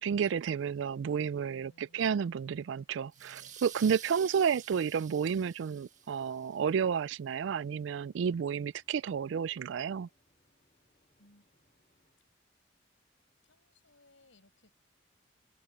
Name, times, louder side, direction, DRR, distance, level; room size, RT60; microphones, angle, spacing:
voice 1, 0.0-10.1, right 7 dB, 70° right, 0.3 m, -31 dB
voice 2, 1.5-2.2 11.2-11.5 13.4-14.8, left 2 dB, 85° left, 6.1 m, -64 dB
sound 1, 3.1-6.6, right 9 dB, 40° right, 1.7 m, -49 dB
sound 2, 3.3-12.2, left 1 dB, 35° left, 4.0 m, -74 dB
open air
head